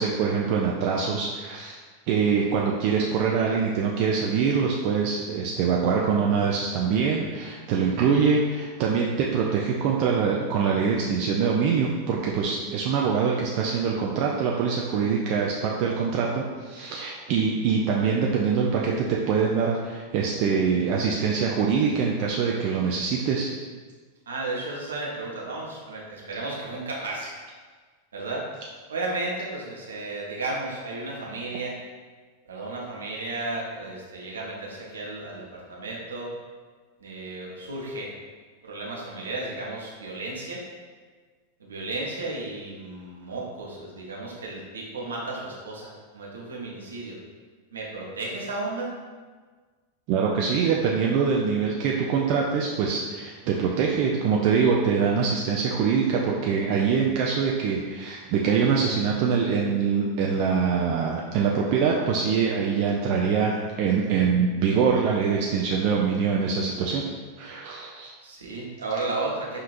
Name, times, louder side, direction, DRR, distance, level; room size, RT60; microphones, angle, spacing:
voice 1, 0.0-1.8 2.1-23.5 50.1-67.0 67.4-68.1, right 6 dB, 45° right, -2 dB, 0.3 m, -24 dB
voice 2, 24.3-27.4 28.1-28.5 28.9-31.8 32.5-36.3 37.0-38.1 38.6-40.6 41.6-47.2 47.7-48.9 68.2-69.6, right 2 dB, 70° right, -3 dB, 0.8 m, -33 dB
5.1 x 2.7 x 2.5 m, 1.5 s
figure-of-eight pair, 90°, 0 cm